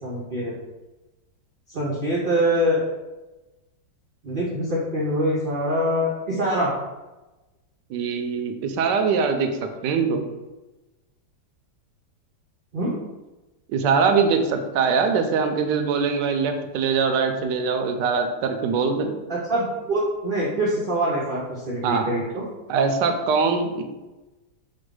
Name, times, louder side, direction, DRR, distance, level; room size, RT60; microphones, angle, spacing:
voice 1, 0.0-0.5 1.7-2.8 4.2-6.7 12.7-12.9 19.3-22.4, equal, 65° right, -5 dB, 0.5 m, -24 dB
voice 2, 7.9-9.5 9.8-10.2 13.7-19.1 21.8-22.1 22.7-23.8, right 5 dB, 85° right, 6 dB, 1.2 m, -22 dB
4.4 x 2.2 x 4.7 m, 1.1 s
omnidirectional pair, 1.9 m